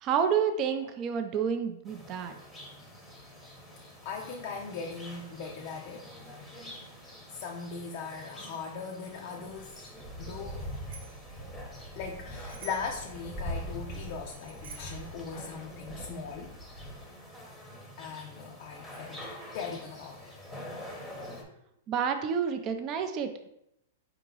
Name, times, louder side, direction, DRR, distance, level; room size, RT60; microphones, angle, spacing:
voice 1, 0.0-2.3 21.9-23.5, right 7 dB, 30° right, 7 dB, 0.4 m, -29 dB
sound 1, 1.8-21.4, equal, 5° left, 0.8 m, -44 dB
voice 2, 4.0-6.1 7.3-9.8 10.2-10.6 12.0-16.6 18.0-20.3, left 5 dB, 45° left, 1 dB, 0.5 m, -39 dB
Bicycle bell, 10.6-11.3 12.5-13.0 14.3-15.1, right 5 dB, 55° right, 1.0 m, -49 dB
4.7 x 2.9 x 3.9 m, 0.79 s
hypercardioid pair, 155°, 0 cm